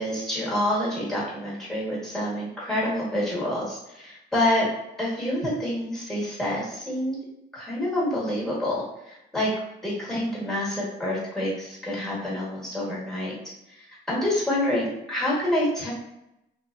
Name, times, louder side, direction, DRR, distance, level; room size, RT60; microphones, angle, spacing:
voice 1, 0.0-4.7 5.0-7.2 7.5-9.5 9.8-13.3 14.1-15.9, left 1 dB, ahead, -6 dB, 1.2 m, -27 dB
2.8 x 2.1 x 2.4 m, 0.86 s
cardioid pair, 90°, 20 cm